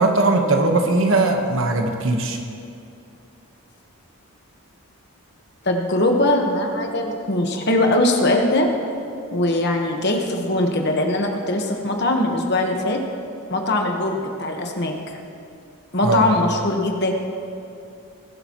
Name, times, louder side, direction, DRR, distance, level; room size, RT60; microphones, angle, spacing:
voice 1, 0.0-2.4 16.0-16.3, right 2 dB, 60° right, 3 dB, 1.3 m, -19 dB
voice 2, 5.6-8.7 9.3-13.0 13.5-15.0 15.9-17.1, left 1 dB, 50° left, 2 dB, 1.4 m, -21 dB
21.0 x 12.0 x 3.1 m, 2.6 s
head